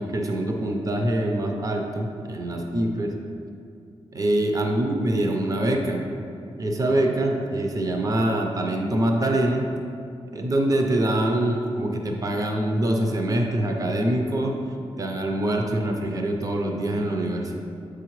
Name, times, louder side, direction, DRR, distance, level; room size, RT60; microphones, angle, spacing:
voice 1, 0.0-3.1 4.1-6.1 6.6-9.7 10.3-14.6 15.0-17.5, right 1 dB, 35° right, 2 dB, 0.6 m, -24 dB
7.4 x 4.8 x 3.1 m, 2.5 s
wide cardioid pair, 135°, 10 cm